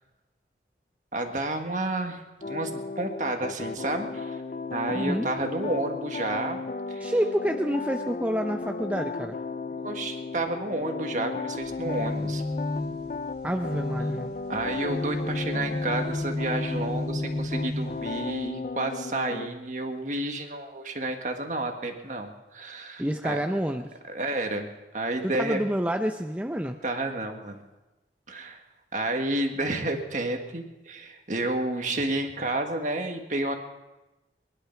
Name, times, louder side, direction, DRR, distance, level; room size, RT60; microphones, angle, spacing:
voice 1, 1.1-4.4 4.7-6.6 6.9-7.1 9.7-12.4 14.5-23.4 24.1-25.6 26.8-27.6 28.3-28.6 28.9-33.5, right 2 dB, 45° right, 4 dB, 1.7 m, -30 dB
sound 1, 2.4-19.5, left 4 dB, 45° left, 0.5 m, -35 dB
voice 2, 4.9-5.3 7.0-9.4 13.4-14.4 23.0-23.9 25.2-26.8, equal, 10° right, 5 dB, 0.5 m, -28 dB
sound 2, 11.6-18.5, left 1 dB, 25° right, 2.5 m, -33 dB
20.5 x 11.5 x 5.9 m, 1.0 s
head